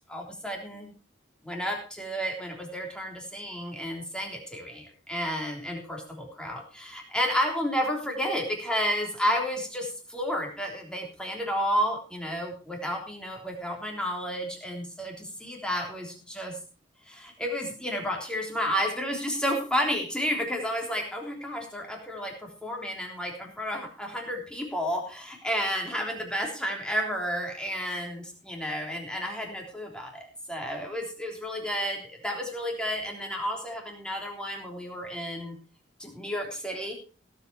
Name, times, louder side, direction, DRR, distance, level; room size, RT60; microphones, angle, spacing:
voice 1, 0.1-0.9 1.4-16.6 17.1-35.6 36.0-36.9, equal, 5° left, 1 dB, 3.4 m, -31 dB
17.0 x 8.3 x 4.6 m, 0.34 s
head